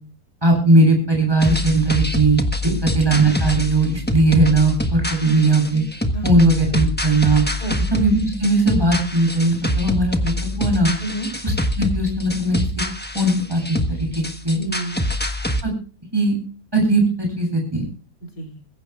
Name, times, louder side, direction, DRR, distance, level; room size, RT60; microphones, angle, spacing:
voice 1, 0.4-2.4 2.9-5.8 6.2-7.4 7.9-10.9 11.8-12.6 13.1-14.6 15.6-15.7 16.1-16.3 16.7-17.8, right 2 dB, 15° right, 1 dB, 8.0 m, -18 dB
sound 1, 1.4-15.6, equal, 5° left, 1.0 m, -25 dB
voice 2, 11.0-11.3 14.6-15.1 18.2-18.6, right 2 dB, 60° left, 2 dB, 3.8 m, -29 dB
22.0 x 15.0 x 2.3 m, 0.38 s
omnidirectional pair, 1.8 m